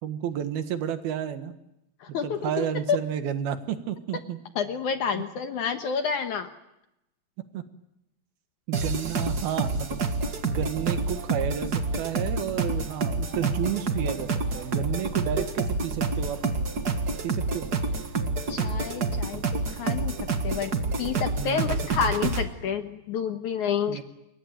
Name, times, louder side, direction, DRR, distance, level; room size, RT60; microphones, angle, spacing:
voice 1, 0.0-1.5 2.2-4.4 5.1-5.2 7.5-7.6 8.7-10.0 10.5-16.4 17.2-17.7 21.4-22.1 23.9-24.0, right 9 dB, 70° right, 9 dB, 3.3 m, -31 dB
voice 2, 2.0-3.0 4.6-6.5 18.5-20.2 20.4-20.7 21.0-24.0, left 7 dB, 65° left, 7 dB, 2.2 m, -29 dB
sound 1, 8.7-22.4, right 3 dB, 50° right, 1.1 m, -28 dB
28.0 x 22.5 x 9.2 m, 0.88 s
omnidirectional pair, 4.6 m